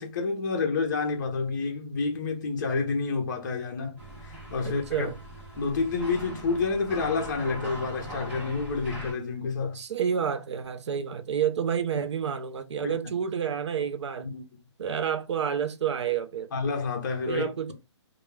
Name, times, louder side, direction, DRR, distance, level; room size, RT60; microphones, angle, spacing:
voice 1, 0.0-5.1 5.6-9.8 12.8-13.0 14.2-14.4 16.5-17.7, left 4 dB, 40° left, 0.6 m, -29 dB
sound 1, 4.0-9.1, right 1 dB, 5° right, 0.5 m, -41 dB
voice 2, 4.6-5.2 9.7-14.3 14.8-16.5 17.3-17.7, right 8 dB, 75° right, 0.5 m, -29 dB
2.2 x 2.1 x 3.1 m
hypercardioid pair, 165°, 15 cm